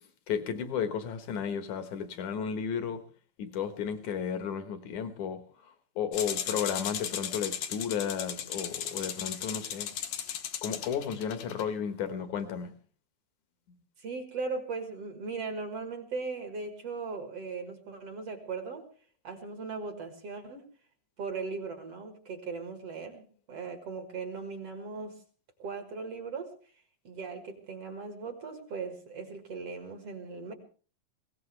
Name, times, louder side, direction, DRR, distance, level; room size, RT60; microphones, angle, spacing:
voice 1, 0.3-3.0 3.4-9.9 10.6-12.7, left 7 dB, 65° left, 2.6 m, -33 dB
sound 1, 6.1-11.6, left 10 dB, 90° left, 3.1 m, -36 dB
voice 2, 14.0-18.8 19.2-20.7 21.2-25.2 25.6-30.5, right 4 dB, 50° right, 2.4 m, -38 dB
21.0 x 17.5 x 3.3 m
omnidirectional pair, 4.0 m